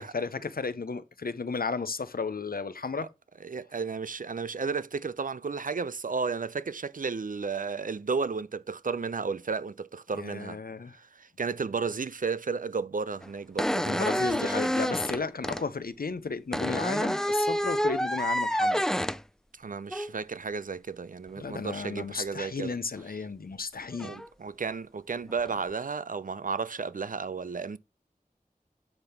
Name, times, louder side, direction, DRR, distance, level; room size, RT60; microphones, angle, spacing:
voice 1, 0.0-3.1 10.1-11.0 13.8-18.9 21.4-24.2, left 4 dB, 85° left, 0.6 m, -34 dB
voice 2, 3.4-10.6 10.9-14.8 19.6-22.7 24.0-27.8, right 5 dB, 65° right, 0.4 m, -33 dB
sound 1, 13.2-13.3 13.6-15.6 16.5-19.2 19.9-20.1 23.0-23.1 23.9-24.3 25.3-25.5, equal, 5° left, 0.3 m, -28 dB
7.9 x 3.5 x 5.7 m
wide cardioid pair, 45°, 15 cm